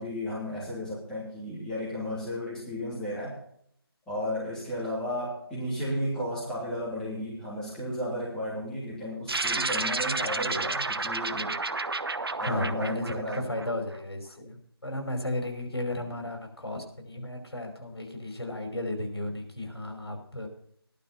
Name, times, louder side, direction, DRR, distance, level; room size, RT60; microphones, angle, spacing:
voice 1, 0.0-3.4 4.1-11.6 12.4-13.5, equal, 5° left, -9 dB, 3.2 m, -33 dB
sound 1, 9.3-14.0, right 3 dB, 70° right, 0.9 m, -31 dB
voice 2, 12.4-20.5, left 1 dB, 80° left, 2 dB, 5.4 m, -34 dB
14.5 x 12.0 x 4.4 m, 0.66 s
figure-of-eight pair, 160°, 13 cm